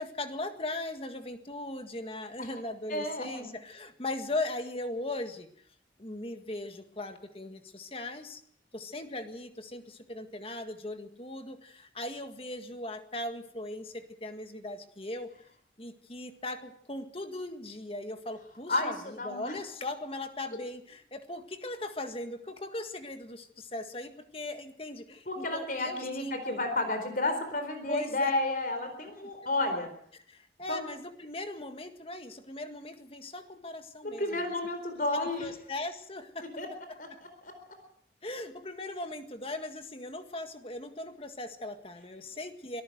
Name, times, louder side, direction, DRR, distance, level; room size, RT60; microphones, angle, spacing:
voice 1, 0.0-5.6 6.0-8.4 8.7-15.3 15.8-26.6 27.9-28.3 30.1-34.5 35.1-36.5 37.1-37.2 38.2-42.8, left 2 dB, 30° left, 7 dB, 1.8 m, -39 dB
voice 2, 2.9-3.5 18.7-19.6 25.3-29.9 30.7-30.8 34.2-35.5 36.6-36.7 37.0-37.1 37.4-37.5, left 2 dB, 50° left, 7 dB, 4.3 m, -31 dB
24.0 x 13.5 x 7.9 m, 0.64 s
head